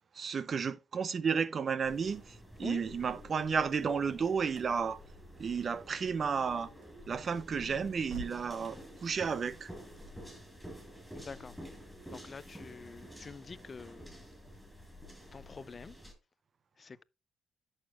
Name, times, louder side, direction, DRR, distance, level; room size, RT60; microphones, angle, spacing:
voice 1, 0.1-5.0 5.4-6.7 7.1-9.7, right 6 dB, 45° right, 0.6 m, -32 dB
sound 1, 1.8-16.1, equal, 5° right, 4.7 m, -50 dB
sound 2, 3.8-8.6, right 3 dB, 75° right, 1.6 m, -52 dB
voice 2, 11.1-11.6 12.1-14.1 15.3-16.0 16.8-17.0, left 5 dB, 35° left, 0.4 m, -46 dB
11.0 x 6.5 x 2.5 m
cardioid pair, 90°, 0 cm